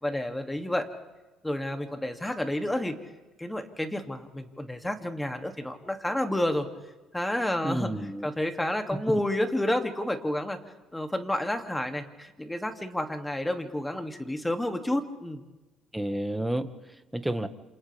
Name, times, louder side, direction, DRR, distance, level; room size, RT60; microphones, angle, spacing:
voice 1, 0.0-0.9 1.4-2.9 3.4-6.7 7.1-7.9 8.2-10.6 10.9-15.4, left 1 dB, 10° left, 5 dB, 2.7 m, -30 dB
voice 2, 7.6-8.3 15.9-17.5, right 1 dB, 5° right, 9 dB, 1.7 m, -31 dB
28.5 x 27.5 x 3.6 m, 1.1 s
supercardioid pair, 70°, 0 cm